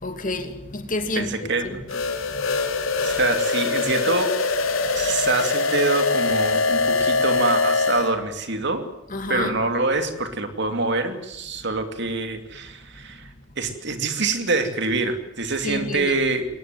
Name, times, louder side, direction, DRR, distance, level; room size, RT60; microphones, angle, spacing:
voice 1, 0.0-1.8 9.1-9.6 15.6-16.2, left 2 dB, 40° left, 2.6 m, -29 dB
voice 2, 1.2-2.0 2.6-2.7 3.0-4.3 5.0-8.8 9.3-13.3 13.6-16.5, right 3 dB, 60° right, 2.7 m, -25 dB
sound 1, 1.9-8.1, left 3 dB, 90° left, 3.3 m, -23 dB
22.5 x 19.5 x 9.1 m
head